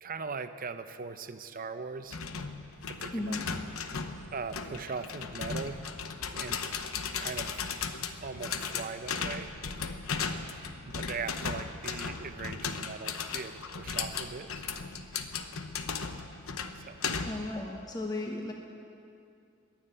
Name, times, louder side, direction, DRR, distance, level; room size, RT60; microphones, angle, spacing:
voice 1, 0.0-2.2 2.9-3.4 4.3-5.8 6.3-7.7 8.2-9.5 10.8-14.7 16.7-17.0, right 4 dB, 45° right, 10 dB, 0.7 m, -40 dB
sound 1, 2.1-17.5, left 5 dB, 90° left, 0.9 m, -36 dB
voice 2, 3.1-3.5 10.7-10.9 17.2-18.5, left 2 dB, 20° left, 1 dB, 1.0 m, -35 dB
22.0 x 7.4 x 8.9 m, 2.5 s
head